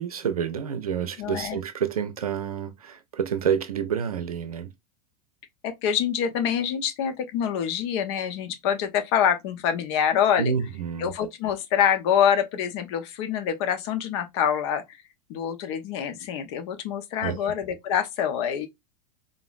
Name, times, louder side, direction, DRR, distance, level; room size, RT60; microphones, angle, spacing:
voice 1, 0.0-4.7 10.4-11.1 17.2-17.5, right 7 dB, 70° right, 0.6 m, -28 dB
voice 2, 1.2-1.6 5.6-10.5 11.0-15.0 15.3-18.7, left 8 dB, 45° left, 0.9 m, -25 dB
4.9 x 2.6 x 2.5 m
figure-of-eight pair, 90°, 20 cm